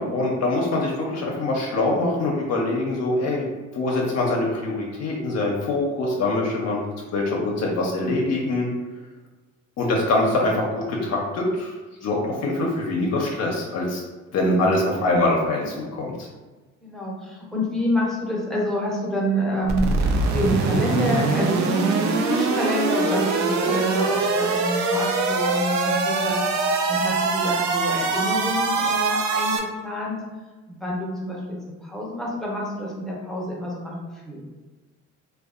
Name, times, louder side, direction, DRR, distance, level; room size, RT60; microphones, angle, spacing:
voice 1, 0.0-6.8 7.1-8.7 9.8-11.7 12.0-14.0 14.3-16.3, left 2 dB, 60° left, -2 dB, 0.5 m, -24 dB
voice 2, 16.8-26.4 26.9-30.2 30.7-33.9 34.2-34.4, equal, ahead, -4 dB, 0.6 m, -28 dB
sound 1, 19.7-29.6, right 3 dB, 65° right, 0.4 m, -23 dB
2.6 x 2.2 x 2.4 m, 1.2 s
cardioid pair, 90°, 30 cm